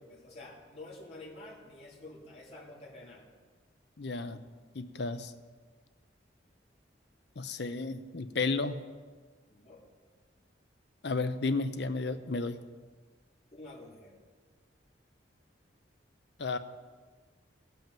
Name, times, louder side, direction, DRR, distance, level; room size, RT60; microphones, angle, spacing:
voice 1, 0.0-3.3 9.5-9.8 13.5-14.2, left 2 dB, 35° left, -5 dB, 2.7 m, -49 dB
voice 2, 4.0-4.4 4.7-5.3 7.4-8.8 11.0-12.6 16.4-16.6, left 3 dB, 65° left, 11 dB, 0.7 m, -32 dB
15.5 x 5.7 x 7.6 m, 1.4 s
head